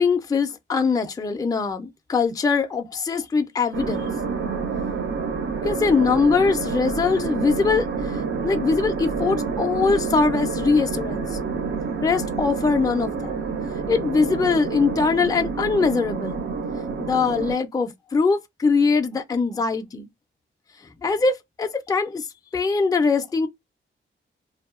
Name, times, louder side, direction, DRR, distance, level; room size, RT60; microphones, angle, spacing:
voice 1, 0.0-4.1 5.6-11.4 12.0-13.3 13.9-16.4 17.0-20.1 21.0-22.3 22.5-23.5, left 4 dB, 20° left, 0.4 m, -22 dB
sound 1, 3.7-17.6, right 5 dB, 65° right, 0.6 m, -28 dB
2.6 x 2.2 x 2.4 m
wide cardioid pair, 90°, 21 cm